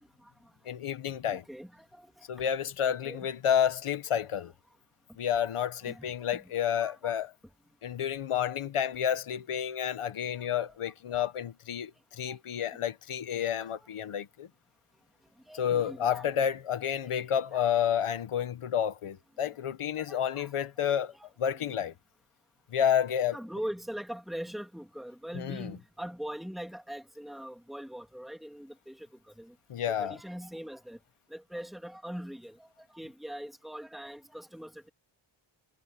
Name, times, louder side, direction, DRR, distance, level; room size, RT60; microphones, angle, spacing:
voice 1, 0.6-1.4 2.3-4.5 5.2-7.3 7.8-14.5 15.5-21.1 21.4-21.9 22.7-23.4 25.3-25.8 29.7-30.2, left 9 dB, 85° left, 1.4 m, -30 dB
voice 2, 1.3-2.2 2.9-3.3 5.8-6.4 6.8-7.2 10.5-11.3 12.3-12.4 13.4-13.7 15.5-16.3 17.5-17.7 20.0-20.7 21.1-21.6 23.3-29.1 29.4-29.5 29.9-31.0 31.3-32.7 32.9-34.9, equal, ahead, 3.1 m, -42 dB
wide cardioid pair, 125°, 49 cm